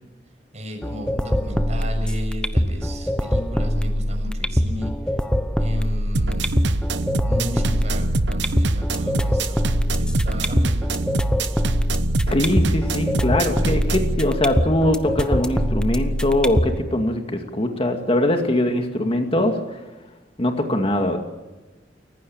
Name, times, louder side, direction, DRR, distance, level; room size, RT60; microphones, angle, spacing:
voice 1, 0.5-4.9 5.6-6.5 7.2-9.6 10.0-10.9, equal, 40° right, 4 dB, 6.5 m, -34 dB
sound 1, 0.8-16.8, equal, 5° left, 1.0 m, -23 dB
sound 2, 6.1-14.1, right 2 dB, 70° right, 1.0 m, -25 dB
voice 2, 12.3-19.8 20.4-21.2, left 1 dB, 30° left, 4 dB, 2.3 m, -22 dB
29.5 x 16.0 x 8.8 m, 1.1 s
head